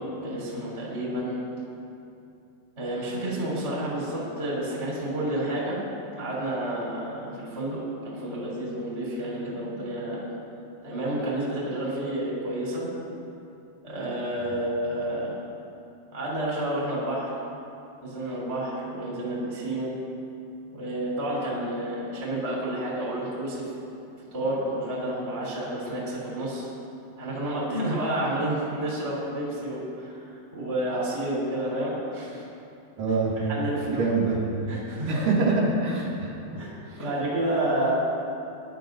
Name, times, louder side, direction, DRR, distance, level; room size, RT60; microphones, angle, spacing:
voice 1, 0.0-1.4 2.8-5.8 6.2-10.2 10.8-12.9 13.8-15.3 16.1-17.3 18.0-20.0 20.7-23.7 24.3-26.7 27.2-30.2 30.5-32.4 33.5-34.0 34.7-35.3 36.6-37.9, right 1 dB, 15° right, -6 dB, 3.0 m, -30 dB
voice 2, 33.0-33.3 33.9-34.4 35.1-36.6 36.9-37.0, right 3 dB, 55° right, -5 dB, 3.4 m, -25 dB
20.0 x 12.0 x 2.7 m, 2.7 s
omnidirectional pair, 5.1 m